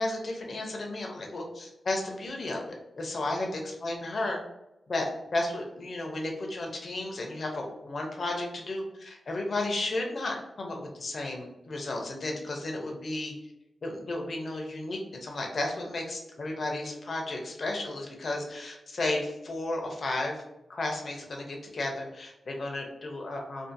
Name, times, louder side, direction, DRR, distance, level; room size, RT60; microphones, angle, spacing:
voice 1, 0.0-4.4 4.9-5.1 5.3-13.3 13.8-20.4 20.7-23.7, left 2 dB, 45° left, 1 dB, 0.5 m, -33 dB
2.5 x 2.4 x 2.5 m, 0.93 s
wide cardioid pair, 140°, 0 cm